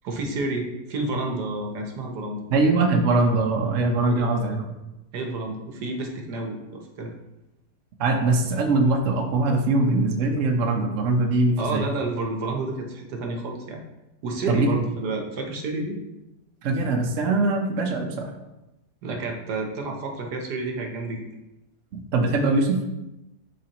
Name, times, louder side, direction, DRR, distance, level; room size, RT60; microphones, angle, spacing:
voice 1, 0.0-2.4 4.1-4.3 5.1-7.2 11.6-13.8 14.2-16.0 19.0-21.3, right 2 dB, 75° right, 1 dB, 1.6 m, -30 dB
voice 2, 2.5-4.7 8.0-11.9 14.5-14.8 16.6-18.4 21.9-22.8, right 3 dB, 55° right, 2 dB, 1.1 m, -22 dB
10.5 x 4.0 x 2.9 m, 0.97 s
omnidirectional pair, 1.8 m